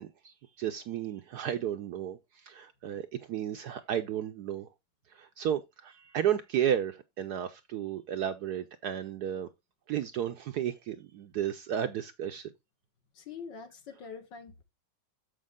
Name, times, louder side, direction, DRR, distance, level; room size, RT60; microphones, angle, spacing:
voice 1, 0.0-4.7 5.1-9.5 9.9-12.5, right 10 dB, 70° right, 1.0 m, -33 dB
voice 2, 13.2-14.6, left 6 dB, 65° left, 1.9 m, -44 dB
7.1 x 6.5 x 3.6 m
omnidirectional pair, 2.2 m